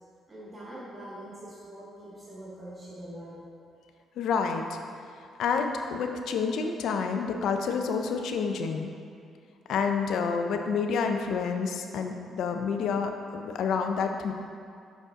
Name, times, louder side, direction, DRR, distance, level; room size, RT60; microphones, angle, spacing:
voice 1, 0.3-3.4, right 1 dB, 25° right, -7 dB, 1.1 m, -43 dB
voice 2, 4.2-4.8 5.4-8.9 9.7-14.3, left 5 dB, 75° left, 5 dB, 0.5 m, -28 dB
6.4 x 5.2 x 3.6 m, 2.4 s
cardioid pair, 90°, 0 cm